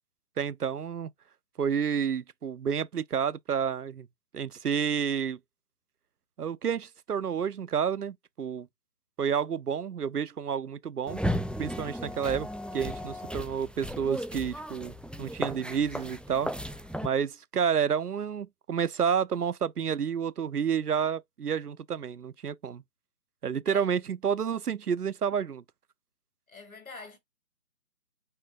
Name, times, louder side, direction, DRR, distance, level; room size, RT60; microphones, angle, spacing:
voice 1, 0.4-1.1 1.6-4.1 4.3-5.4 6.4-8.7 9.2-11.2 11.6-12.5 12.7-14.9 15.2-16.5 17.0-22.8 23.4-25.6, right 7 dB, 70° right, 0.6 m, -30 dB
sound 1, 11.1-17.1, equal, 5° left, 0.3 m, -35 dB
voice 2, 26.5-27.2, left 4 dB, 60° left, 1.9 m, -45 dB
4.7 x 4.5 x 2.4 m
figure-of-eight pair, 180°, 48 cm